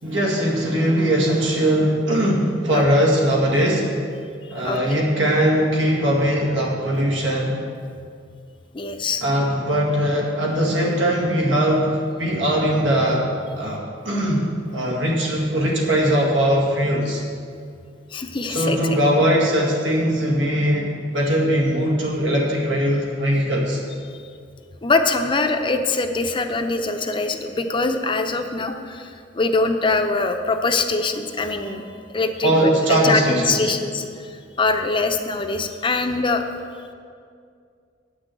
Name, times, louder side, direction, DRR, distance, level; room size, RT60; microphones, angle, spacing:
voice 1, 0.0-3.9 4.5-7.6 9.2-11.9 12.2-13.2 13.6-17.2 18.5-23.8 32.4-33.7, equal, 85° right, -2 dB, 2.0 m, -20 dB
voice 2, 2.7-3.1 4.6-5.1 8.7-9.2 18.1-19.0 24.8-31.8 32.1-34.0 34.6-36.4, left 3 dB, 25° left, 6 dB, 0.6 m, -23 dB
8.6 x 6.1 x 7.7 m, 2.3 s
head